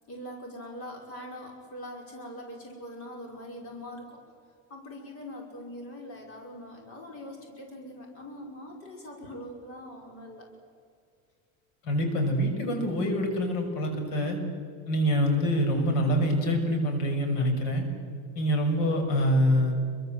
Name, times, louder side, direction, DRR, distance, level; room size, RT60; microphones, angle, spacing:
voice 1, 0.1-4.2 4.7-10.5, equal, 40° left, 1 dB, 5.5 m, -42 dB
voice 2, 11.8-14.4 14.9-17.9 18.3-19.9, equal, 80° left, 4 dB, 6.8 m, -25 dB
28.0 x 23.5 x 8.0 m, 2.4 s
cardioid pair, 160°, 36 cm